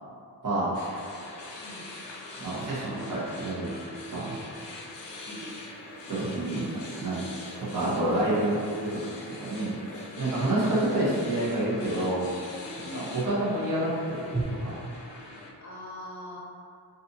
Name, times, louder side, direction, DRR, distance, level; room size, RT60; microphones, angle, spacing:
sound 1, 0.7-15.5, left 2 dB, 80° left, 0.5 m, -42 dB
sound 2, 0.8-0.9 4.3-14.4, right 3 dB, 10° right, 0.3 m, -45 dB
voice 1, 2.4-3.7 4.1-4.3 6.1-6.7 7.0-7.2 7.7-9.0 9.4-12.3 12.8-12.9 13.2-13.9 14.5-14.7, right 1 dB, 50° right, -10 dB, 0.9 m, -28 dB
voice 2, 12.9-13.5 15.6-16.4, left 1 dB, 45° left, -7 dB, 0.6 m, -42 dB
2.5 x 2.5 x 2.6 m, 2.4 s
wide cardioid pair, 85°, 42 cm